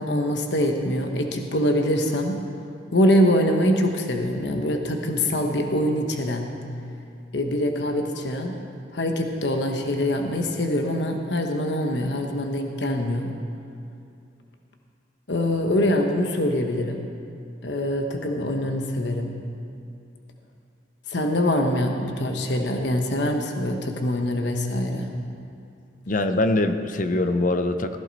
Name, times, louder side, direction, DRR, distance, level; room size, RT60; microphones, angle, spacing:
voice 1, 0.0-2.4 2.9-6.5 7.3-8.6 8.9-13.3 15.3-17.1 17.6-19.4 21.1-25.1, left 1 dB, 65° left, 3 dB, 1.1 m, -24 dB
voice 2, 26.1-28.0, left 2 dB, 45° left, 9 dB, 0.7 m, -23 dB
16.5 x 14.5 x 4.1 m, 2.5 s
head